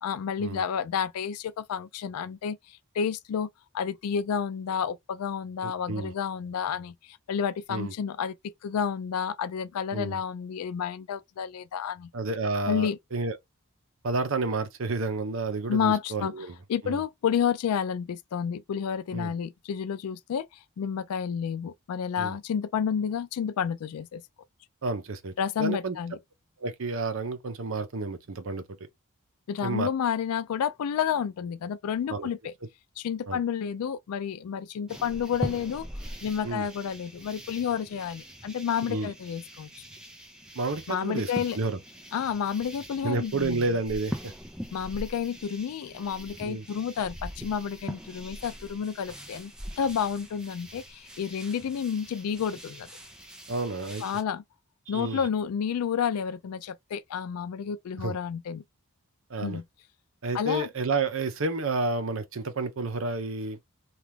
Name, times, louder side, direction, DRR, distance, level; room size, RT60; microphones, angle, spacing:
voice 1, 0.0-3.5 3.7-12.1 12.7-13.0 15.7-16.3 16.7-20.5 20.8-24.2 25.4-26.2 29.5-32.5 33.0-35.9 36.2-39.7 40.9-41.6 42.1-43.6 44.7-52.9 54.0-54.4 54.9-58.6 59.4-59.6 60.3-60.7, left 7 dB, 90° left, 0.3 m, -30 dB
voice 2, 5.6-6.1 7.7-7.9 9.9-10.2 12.1-13.4 14.0-16.6 16.8-17.0 19.1-19.3 22.2-22.4 24.8-26.0 26.6-28.6 29.6-29.9 32.1-32.3 33.3-33.4 36.4-36.7 38.9-39.1 40.5-41.8 43.0-44.3 46.4-46.7 53.5-54.0 54.9-55.3 58.0-58.2 59.3-59.6 60.2-63.6, right 3 dB, 65° right, 0.7 m, -30 dB
sound 1, 34.9-54.2, equal, 5° right, 0.5 m, -42 dB
2.9 x 2.4 x 3.3 m
head